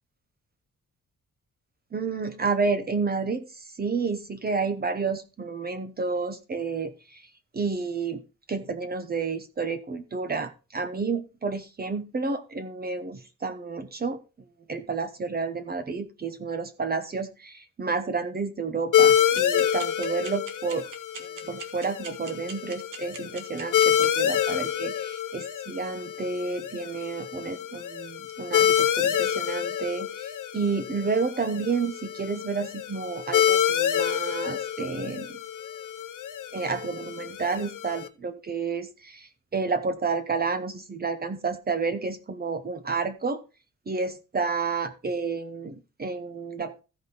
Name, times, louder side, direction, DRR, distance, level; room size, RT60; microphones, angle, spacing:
voice 1, 1.9-3.5 3.8-7.2 7.5-8.2 8.5-14.2 14.7-20.8 21.4-35.3 36.5-43.4 43.9-46.7, right 4 dB, 30° right, 9 dB, 0.9 m, -30 dB
sound 1, 18.9-38.1, left 10 dB, 85° left, 0.9 m, -27 dB
sound 2, 19.4-24.1, right 5 dB, 90° right, 1.7 m, -39 dB
14.5 x 5.1 x 3.9 m, 0.30 s
wide cardioid pair, 145°, 30 cm